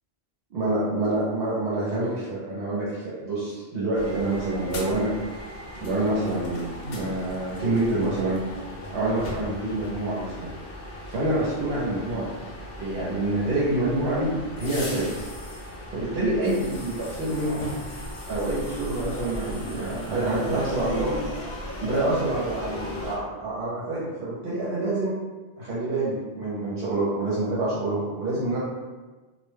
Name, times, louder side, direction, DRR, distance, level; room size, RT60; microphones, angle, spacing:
voice 1, 0.5-5.1 5.8-8.4 8.9-10.5 11.1-12.3 12.8-14.3 14.6-15.1 15.9-17.7 18.3-21.2 21.8-25.1 25.6-28.6, right 2 dB, 70° right, -8 dB, 0.9 m, -27 dB
sound 1, 3.9-23.2, left 1 dB, 55° left, 0.6 m, -37 dB
2.3 x 2.1 x 3.2 m, 1.3 s
omnidirectional pair, 1.1 m